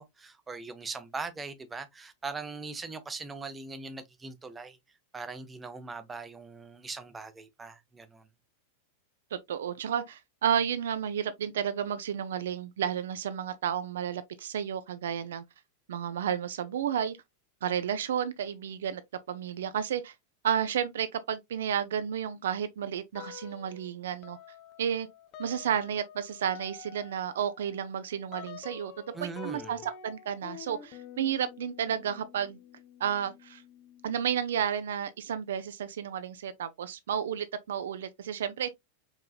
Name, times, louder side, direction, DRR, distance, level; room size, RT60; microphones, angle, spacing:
voice 1, 0.0-4.8 5.1-8.3 29.1-29.8, right 4 dB, 15° right, 0.7 m, -40 dB
voice 2, 9.3-15.4 15.9-17.2 17.6-19.0 19.3-20.1 20.4-24.4 24.8-25.1 25.4-32.6 33.0-33.6 34.0-38.7, right 9 dB, 60° right, 0.4 m, -32 dB
sound 1, 23.1-23.9 24.2-34.6, left 9 dB, 40° left, 0.7 m, -48 dB
4.7 x 3.7 x 2.3 m
figure-of-eight pair, 90°, 0 cm